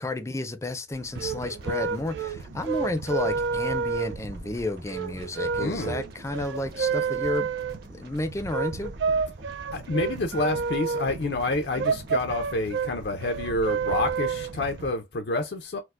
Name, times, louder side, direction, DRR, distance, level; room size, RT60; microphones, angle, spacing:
voice 1, 0.0-7.5 7.9-8.9, left 2 dB, 15° left, 0.4 m, -31 dB
sound 1, 0.9-14.9, right 5 dB, 85° right, 0.3 m, -30 dB
sound 2, 1.1-14.9, right 1 dB, 60° right, 1.0 m, -45 dB
voice 2, 5.6-6.0 9.7-15.8, left 2 dB, 70° left, 0.5 m, -28 dB
4.4 x 2.1 x 2.4 m
head